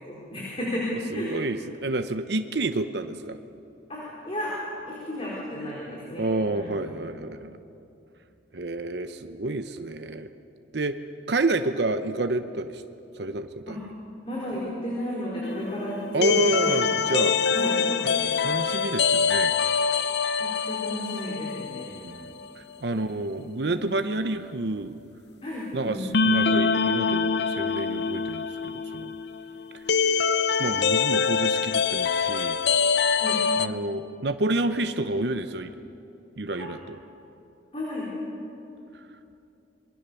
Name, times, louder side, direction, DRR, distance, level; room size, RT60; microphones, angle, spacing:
voice 1, 0.0-1.5 3.9-4.6 4.9-7.0 13.7-13.8 14.2-18.2 20.4-21.9 22.9-23.0 25.4-26.1 33.2-33.4 36.6-36.7 37.7-38.1, left 1 dB, 30° left, -5 dB, 4.5 m, -33 dB
voice 2, 1.1-3.4 6.2-7.6 8.5-10.3 10.7-11.0 11.3-12.8 13.2-13.8 16.1-17.4 18.4-19.5 21.9-25.0 25.7-29.2 29.7-29.8 30.6-32.6 33.6-35.7 36.4-37.0, right 2 dB, 60° right, 8 dB, 0.8 m, -29 dB
sound 1, 15.4-22.1 22.4-22.5 26.1-33.7, left 5 dB, 60° left, 0.7 m, -24 dB
27.0 x 21.0 x 7.0 m, 2.8 s
head